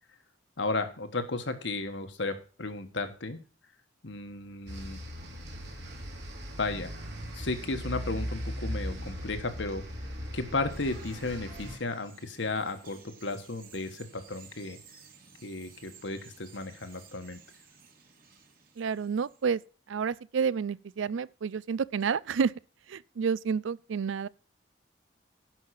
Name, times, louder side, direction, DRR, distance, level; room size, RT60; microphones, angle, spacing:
voice 1, 0.6-3.4 4.0-5.0 6.6-6.9 7.3-9.8 10.3-14.8 15.4-17.4, left 3 dB, 70° left, 1.5 m, -34 dB
sound 1, 4.7-11.8, equal, 65° right, 2.9 m, -38 dB
Bird vocalization bird call bird song, 10.7-19.6, right 6 dB, 45° right, 2.1 m, -56 dB
voice 2, 18.8-19.6 19.9-22.5 22.9-24.3, right 6 dB, 80° right, 0.4 m, -29 dB
11.0 x 5.6 x 6.4 m
head